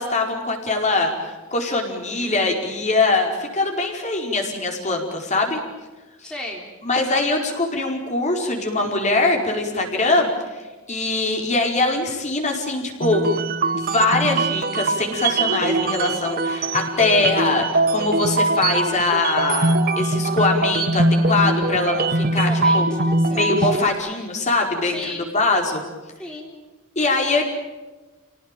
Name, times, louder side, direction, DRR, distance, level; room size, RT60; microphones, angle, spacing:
voice 1, 0.0-5.6 6.8-10.6 10.9-13.2 13.9-22.9 23.3-25.0 25.3-25.8 26.9-27.5, left 3 dB, 35° left, 1 dB, 4.8 m, -22 dB
voice 2, 6.2-6.7 22.3-23.8 24.8-25.3 26.2-26.5, left 1 dB, 5° left, -1 dB, 3.6 m, -35 dB
sound 1, 13.0-23.9, right 2 dB, 45° right, 1.1 m, -22 dB
29.0 x 18.5 x 9.2 m, 1.2 s
head